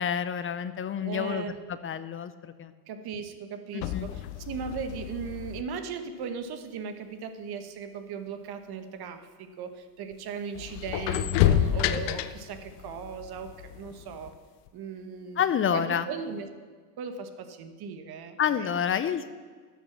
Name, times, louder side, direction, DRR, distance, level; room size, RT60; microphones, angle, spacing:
voice 1, 0.0-1.5 1.8-2.3 2.6-2.7 3.9-4.1 15.4-16.1 18.4-19.4, left 8 dB, 25° left, 12 dB, 0.5 m, -28 dB
voice 2, 1.0-1.6 2.9-14.4 14.7-16.5 17.0-18.7, right 6 dB, 50° right, 8 dB, 1.3 m, -38 dB
sound 1, 3.8-5.6 10.1-10.2 10.5-14.4 14.7-14.8, left 11 dB, 75° left, 0.8 m, -29 dB
12.0 x 6.0 x 7.2 m, 1.5 s
supercardioid pair, 100°, 49 cm